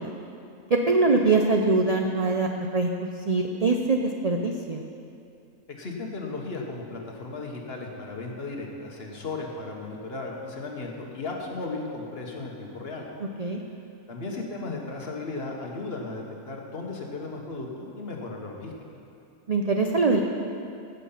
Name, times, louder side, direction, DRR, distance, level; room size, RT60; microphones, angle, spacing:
voice 1, 0.7-2.9 3.3-4.8 13.4-13.6 19.5-20.2, right 3 dB, 55° right, 2 dB, 0.4 m, -23 dB
voice 2, 5.7-13.1 14.1-18.7, left 3 dB, 45° left, 0 dB, 1.5 m, -35 dB
15.5 x 6.8 x 5.7 m, 2.6 s
omnidirectional pair, 1.5 m